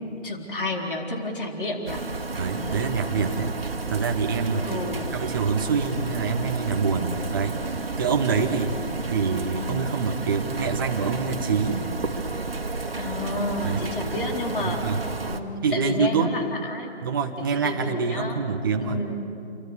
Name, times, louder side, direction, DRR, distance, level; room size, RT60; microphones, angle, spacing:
voice 1, 0.0-2.0 4.6-5.2 13.0-14.8 15.3-16.9 17.4-18.4 18.8-19.3, left 2 dB, 50° left, 1 dB, 4.1 m, -31 dB
sound 1, 1.9-15.4, right 3 dB, 55° right, 1.9 m, -32 dB
voice 2, 2.4-4.8 5.1-8.8 9.1-11.9 13.6-13.9 14.6-15.0 15.6-16.4 17.0-19.0, right 5 dB, 20° right, 3 dB, 1.0 m, -26 dB
28.5 x 23.5 x 7.2 m, 2.6 s
figure-of-eight pair, 155°, 34 cm